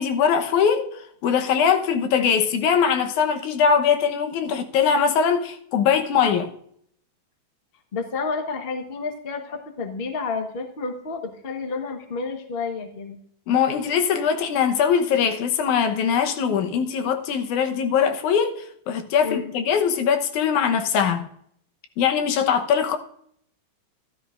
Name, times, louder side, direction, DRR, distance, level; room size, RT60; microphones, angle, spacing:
voice 1, 0.0-6.5 13.5-21.3 22.0-23.0, left 7 dB, 90° left, 2.5 m, -21 dB
voice 2, 7.9-13.2 19.2-19.5, left 4 dB, 75° left, 0.5 m, -30 dB
13.0 x 12.5 x 2.5 m
omnidirectional pair, 3.3 m